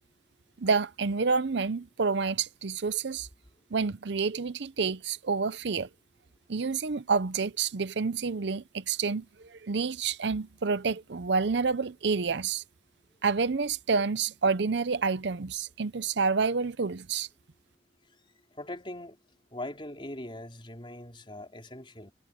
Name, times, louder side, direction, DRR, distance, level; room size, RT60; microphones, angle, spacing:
voice 1, 0.6-3.3 3.7-5.9 6.5-12.6 13.2-17.3, right 5 dB, 60° right, 0.6 m, -28 dB
voice 2, 18.5-19.2 19.5-22.1, left 1 dB, 25° left, 4.5 m, -41 dB
head